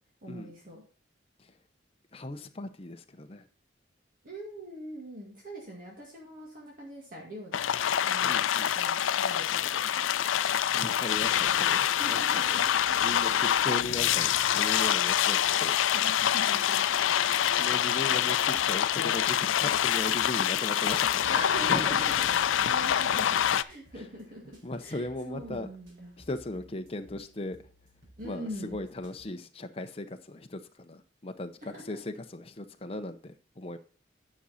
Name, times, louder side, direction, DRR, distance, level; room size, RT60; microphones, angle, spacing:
voice 1, 0.2-0.8 4.2-7.6 8.1-10.1 12.0-13.0 15.9-17.3 21.3-24.4 24.8-26.2 28.2-28.8 31.6-31.8, equal, 45° right, 2.0 m, -42 dB
voice 2, 2.1-3.4 8.3-8.7 10.7-12.4 13.0-15.8 17.5-22.0 23.9-24.1 24.6-25.7 26.2-27.6 28.2-33.8, left 2 dB, 30° left, 0.7 m, -38 dB
sound 1, 7.5-23.6, left 10 dB, 85° left, 0.4 m, -26 dB
sound 2, 18.5-29.2, equal, 90° right, 4.4 m, -58 dB
10.0 x 6.3 x 4.2 m
head